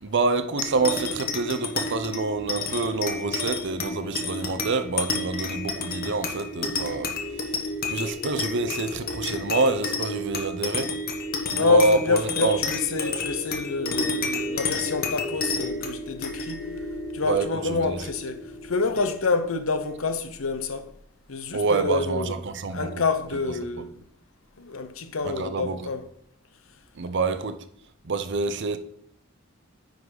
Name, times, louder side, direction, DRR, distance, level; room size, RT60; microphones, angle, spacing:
voice 1, 0.0-7.1 7.9-10.9 11.5-12.6 17.3-18.0 21.5-22.9 23.6-23.7 25.2-25.8 27.0-27.6 28.0-28.8, right 3 dB, 60° right, 0.6 m, -27 dB
sound 1, 0.6-19.4, left 3 dB, 45° left, 1.1 m, -31 dB
voice 2, 11.6-16.6 17.1-20.9 21.3-22.3 22.7-23.9 24.6-26.0, left 4 dB, 80° left, 0.8 m, -27 dB
9.7 x 4.0 x 4.9 m
head